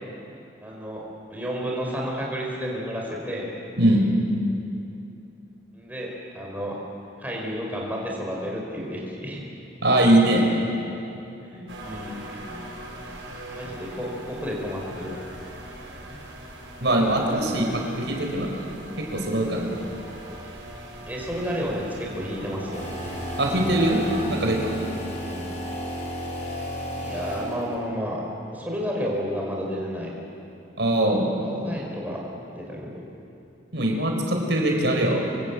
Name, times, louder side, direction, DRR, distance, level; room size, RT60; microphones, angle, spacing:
voice 1, 0.6-3.5 5.7-6.8 7.2-9.4 10.3-10.5 11.4-12.2 13.5-15.2 16.0-16.2 21.1-22.8 25.1-25.4 26.9-28.2 28.5-30.1 31.4-32.2 32.5-33.0, equal, 10° right, -2 dB, 5.1 m, -31 dB
voice 2, 3.8-4.1 9.8-10.4 16.8-18.6 19.0-19.8 23.4-24.0 24.3-24.8 30.8-31.3 33.7-35.2, right 1 dB, 70° right, 1 dB, 4.6 m, -22 dB
sound 1, 11.7-24.2, right 1 dB, 90° right, 6.3 m, -40 dB
sound 2, 22.7-27.9, equal, 35° left, 6.3 m, -33 dB
25.5 x 23.0 x 8.6 m, 2.8 s
head